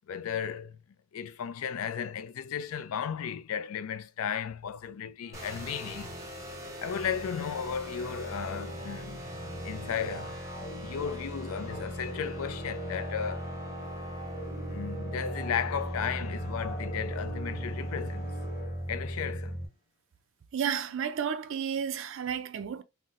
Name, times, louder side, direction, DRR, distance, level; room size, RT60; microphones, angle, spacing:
voice 1, 0.1-0.8 1.1-6.2 6.6-9.2 9.6-13.5 14.7-18.3 18.9-19.6, left 7 dB, 75° left, 0.4 m, -35 dB
sound 1, 5.2-19.3, right 2 dB, 45° left, 0.9 m, -45 dB
sound 2, 5.3-19.7, equal, 15° right, 0.6 m, -38 dB
voice 2, 20.5-22.8, right 8 dB, 60° right, 0.3 m, -32 dB
4.0 x 2.0 x 2.4 m
head